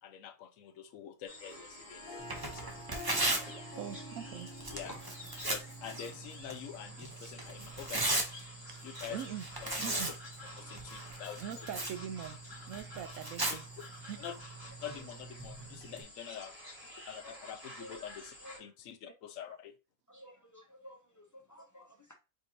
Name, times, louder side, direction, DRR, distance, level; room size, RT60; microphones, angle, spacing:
voice 1, 0.0-3.0 4.7-5.0 5.4-8.2 8.8-9.2 9.6-10.0 10.6-11.4 14.2-14.3 14.8-16.6 17.0-19.7, left 9 dB, 85° left, 1.1 m, -46 dB
Harp, 1.3-6.5, left 2 dB, 45° left, 1.2 m, -50 dB
sound 1, 1.3-18.6, left 1 dB, 60° right, 2.5 m, -50 dB
Tearing, 2.2-16.0, right 2 dB, 20° right, 0.6 m, -39 dB
voice 2, 3.8-4.5 8.7-9.5 9.8-10.1 11.1-12.4 12.7-13.6 14.0-14.4, right 9 dB, 80° right, 1.0 m, -43 dB
voice 3, 20.1-21.0 21.5-22.1, equal, 20° left, 0.7 m, -51 dB
4.7 x 3.6 x 2.7 m
omnidirectional pair, 1.4 m